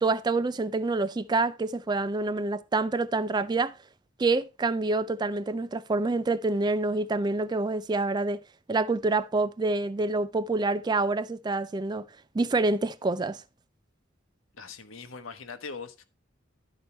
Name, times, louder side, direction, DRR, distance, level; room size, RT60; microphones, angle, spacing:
voice 1, 0.0-3.7 4.2-8.4 8.7-12.1 12.3-13.4, right 3 dB, 20° right, 0.3 m, -27 dB
voice 2, 14.5-16.0, left 5 dB, 85° left, 1.1 m, -41 dB
11.5 x 4.5 x 4.3 m
head